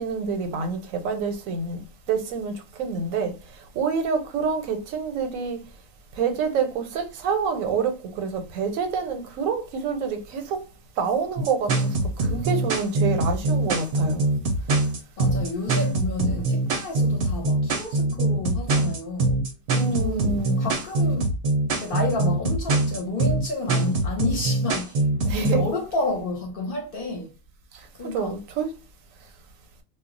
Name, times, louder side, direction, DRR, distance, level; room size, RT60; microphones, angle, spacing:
voice 1, 0.0-1.8 2.1-3.4 3.7-5.7 6.2-10.7 11.0-14.2 19.7-20.7 25.2-25.6 28.1-28.7, right 5 dB, 90° right, 1.0 m, -27 dB
sound 1, 11.4-25.7, right 2 dB, 60° right, 0.6 m, -23 dB
voice 2, 15.2-19.4 20.0-21.3 21.8-25.1 25.4-27.3 27.9-28.4, left 2 dB, 50° left, 0.8 m, -30 dB
2.3 x 2.0 x 3.7 m
omnidirectional pair, 1.4 m